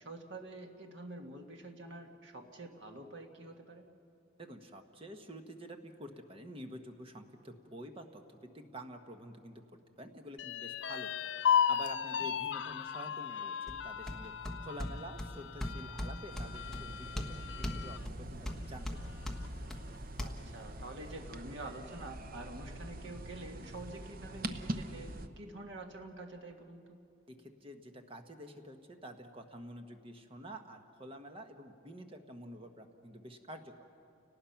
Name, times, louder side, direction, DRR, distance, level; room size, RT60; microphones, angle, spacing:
voice 1, 0.0-3.9 20.2-27.0, right 2 dB, 70° right, 3 dB, 1.8 m, -47 dB
voice 2, 4.4-19.3 27.3-33.9, equal, 30° right, 5 dB, 1.1 m, -49 dB
sound 1, 10.4-18.0 18.5-18.6 19.0-19.6, left 8 dB, 70° left, 0.5 m, -35 dB
sound 2, 13.7-20.3, equal, ahead, 1.2 m, -42 dB
sound 3, 16.3-25.3, right 1 dB, 50° right, 0.8 m, -44 dB
30.0 x 18.5 x 5.8 m, 2.6 s
head